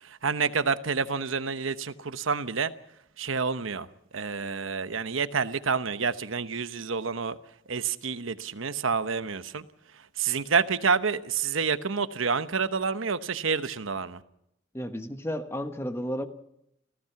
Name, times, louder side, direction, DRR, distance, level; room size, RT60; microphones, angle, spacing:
voice 1, 0.0-2.7 3.2-3.9 4.1-7.4 7.7-9.7 10.2-14.2, right 5 dB, 85° right, 12 dB, 1.0 m, -28 dB
voice 2, 14.7-16.3, equal, 10° left, 8 dB, 1.2 m, -32 dB
28.5 x 15.5 x 5.9 m, 0.77 s
head